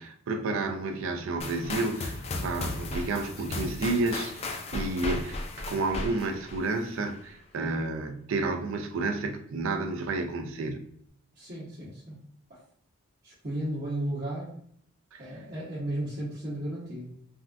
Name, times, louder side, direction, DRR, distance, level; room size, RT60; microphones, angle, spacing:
voice 1, 0.0-10.8 15.1-15.2, right 3 dB, 65° right, 0.4 m, -31 dB
sound 1, 1.4-7.2, left 2 dB, 30° left, 0.3 m, -36 dB
voice 2, 11.4-12.2 12.5-12.6 13.2-14.5 15.2-17.1, right 1 dB, 45° right, 0.9 m, -34 dB
3.5 x 2.2 x 2.5 m
head